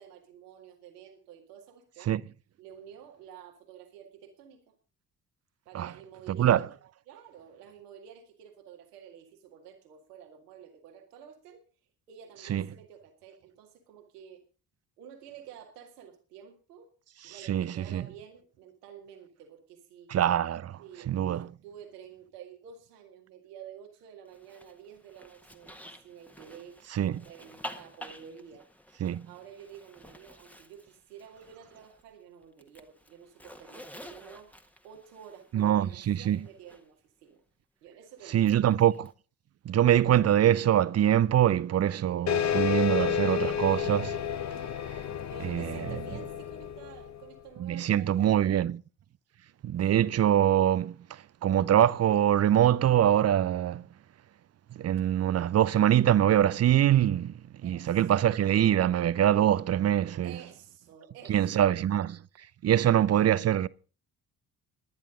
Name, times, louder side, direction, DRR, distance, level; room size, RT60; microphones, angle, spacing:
voice 1, 0.0-2.2 2.6-4.6 5.7-6.6 7.1-11.6 12.1-14.4 15.0-16.9 17.2-20.1 20.8-26.8 27.1-28.7 29.3-34.5 34.8-37.4 37.8-38.8 45.3-48.6 49.9-50.0 57.6-58.0 60.2-61.9 62.7-63.0, right 8 dB, 80° right, 2.1 m, -50 dB
voice 2, 6.3-6.7 12.5-12.6 17.5-18.0 20.1-20.8 21.1-21.5 26.9-27.2 29.0-29.2 35.5-36.4 38.3-39.1 39.6-44.2 45.4-46.0 47.6-48.7 49.6-53.8 54.7-57.3 57.6-60.4 61.3-62.2 62.6-63.7, right 11 dB, 35° right, 0.6 m, -24 dB
Zipper (clothing), 24.3-32.1 32.4-36.8 38.3-39.1, left 1 dB, 5° left, 1.5 m, -50 dB
sound 1, 42.3-47.3, left 9 dB, 35° left, 1.0 m, -31 dB
18.5 x 10.5 x 3.8 m
figure-of-eight pair, 45°, 46 cm